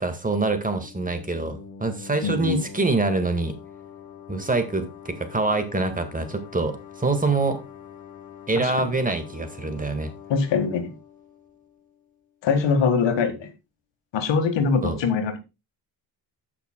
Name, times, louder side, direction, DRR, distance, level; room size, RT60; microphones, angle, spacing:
voice 1, 0.0-3.6 4.3-7.6 8.5-10.1 14.8-15.0, right 3 dB, 20° right, 1.8 m, -25 dB
sound 1, 0.8-12.3, left 7 dB, 50° left, 1.9 m, -44 dB
voice 2, 2.2-2.6 8.8-8.9 10.3-10.9 12.4-13.5 14.1-15.4, left 5 dB, 85° left, 1.8 m, -23 dB
16.0 x 5.9 x 2.3 m
cardioid pair, 85°, 43 cm